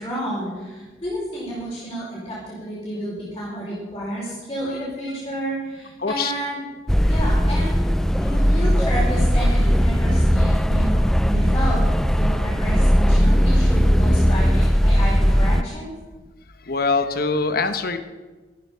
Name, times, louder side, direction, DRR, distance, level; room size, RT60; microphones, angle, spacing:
voice 1, 0.0-6.6 7.1-7.8 8.2-11.8 12.1-15.9, right 1 dB, 25° left, -8 dB, 5.2 m, -30 dB
voice 2, 6.0-6.3 7.1-7.2 16.7-18.0, left 4 dB, 55° left, 9 dB, 1.3 m, -23 dB
sound 1, 6.9-15.6, equal, ahead, 0.4 m, -18 dB
15.0 x 13.5 x 5.7 m, 1.3 s
head